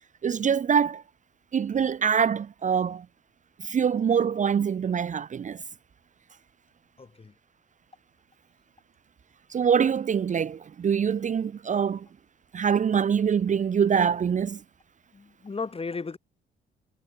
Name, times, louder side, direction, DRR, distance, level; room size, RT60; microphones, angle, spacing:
voice 1, 0.2-1.0 1.5-3.1 3.6-5.6 9.5-12.1 12.5-14.6, right 7 dB, 40° right, 0.7 m, -24 dB
voice 2, 7.0-7.3 15.1-16.2, left 4 dB, 30° left, 4.0 m, -35 dB
cardioid pair, 90°, 20 cm